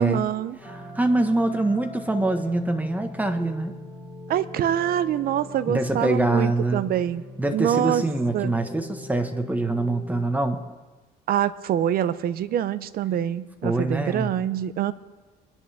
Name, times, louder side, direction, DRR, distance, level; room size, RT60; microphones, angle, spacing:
voice 1, 0.0-0.6 4.3-7.2 7.5-8.1 8.3-8.6 11.3-14.9, right 10 dB, 60° right, 15 dB, 0.7 m, -25 dB
sound 1, 0.6-10.3, left 1 dB, 10° left, 3.2 m, -41 dB
voice 2, 0.7-3.8 5.7-6.8 7.4-10.6 13.6-14.3, right 2 dB, 10° right, 6 dB, 1.4 m, -24 dB
23.5 x 11.0 x 3.5 m, 1.2 s
cardioid pair, 110°, 17 cm